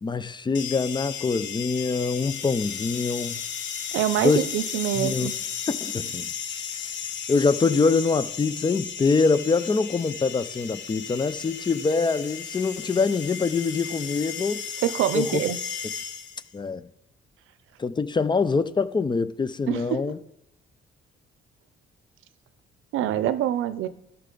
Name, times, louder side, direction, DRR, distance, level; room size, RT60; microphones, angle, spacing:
voice 1, 0.0-3.4 4.2-4.4 5.0-5.3 5.7-6.3 7.3-14.6 15.1-15.4 16.5-16.9 17.8-20.2, left 4 dB, 25° left, 0.4 m, -24 dB
sound 1, 0.5-16.5, left 7 dB, 65° left, 0.9 m, -34 dB
voice 2, 3.9-5.3 14.8-15.6 19.7-20.1 22.9-23.9, right 12 dB, 85° right, 0.5 m, -25 dB
13.0 x 5.8 x 3.8 m
cardioid pair, 90°, 20 cm